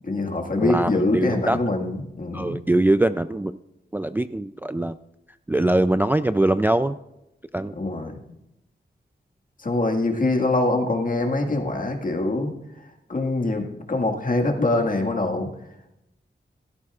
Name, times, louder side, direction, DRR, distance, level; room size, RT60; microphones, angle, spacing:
voice 1, 0.0-2.6 7.8-8.2 9.6-12.5 12.8-15.5, left 2 dB, 45° left, 2 dB, 1.8 m, -24 dB
voice 2, 0.6-1.6 2.3-3.6 3.9-5.0 5.5-7.0 7.5-7.8, right 1 dB, 10° right, 11 dB, 0.3 m, -22 dB
16.5 x 13.0 x 2.4 m, 0.88 s
wide cardioid pair, 95°, 19 cm